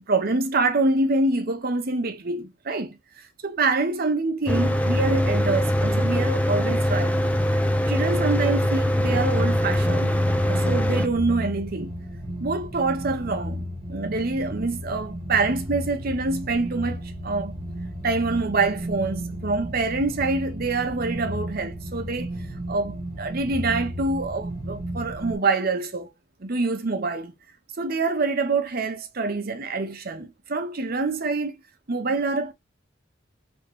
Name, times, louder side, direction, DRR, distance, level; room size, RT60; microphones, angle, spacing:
voice 1, 0.1-7.2 7.9-10.2 10.5-12.0 12.4-17.5 18.0-22.3 22.7-26.1 26.4-27.3 27.8-31.6 31.9-32.5, right 3 dB, 50° right, 0.8 m, -26 dB
Mechanical fan, 4.5-11.1, equal, 5° left, 0.5 m, -22 dB
sound 1, 9.0-25.3, right 1 dB, 30° right, 1.5 m, -34 dB
3.5 x 3.1 x 4.5 m
head